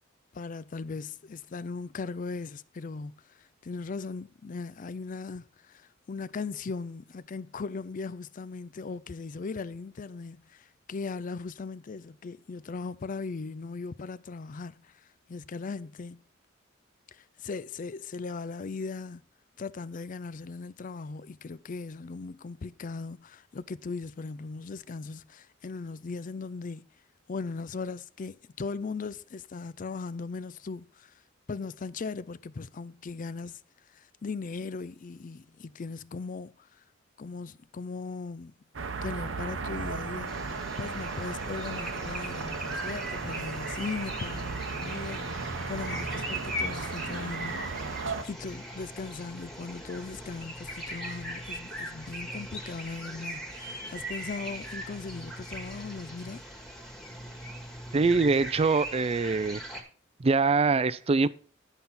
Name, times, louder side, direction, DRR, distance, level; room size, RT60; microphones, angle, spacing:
voice 1, 0.3-16.2 17.1-19.2 19.6-26.9 27.3-31.2 31.5-33.6 33.9-36.8 37.2-38.5 39.0-40.5 40.8-48.0 48.2-56.4, left 4 dB, 45° left, 0.4 m, -38 dB
sound 1, 38.7-48.2, right 4 dB, 80° right, 0.9 m, -35 dB
sound 2, 40.3-59.8, right 1 dB, ahead, 1.8 m, -40 dB
voice 2, 57.9-59.6 60.2-61.3, right 4 dB, 30° right, 0.4 m, -24 dB
11.0 x 5.5 x 5.8 m
head